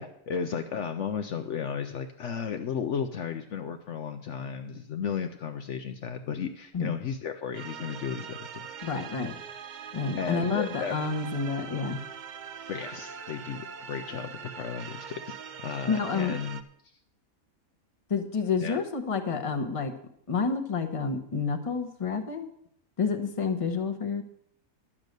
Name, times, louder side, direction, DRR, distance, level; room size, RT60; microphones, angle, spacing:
voice 1, 0.0-8.7 10.2-11.0 12.7-15.4 15.6-16.6 18.6-18.8, left 7 dB, 65° left, 7 dB, 0.9 m, -34 dB
sound 1, 7.5-16.6, right 7 dB, 55° right, 0.5 m, -42 dB
voice 2, 8.8-9.4 9.9-12.0 15.9-16.4 18.1-19.9 20.3-22.5 23.0-24.2, left 5 dB, 25° left, 7 dB, 0.9 m, -29 dB
10.5 x 7.3 x 6.6 m, 0.68 s
omnidirectional pair, 1.5 m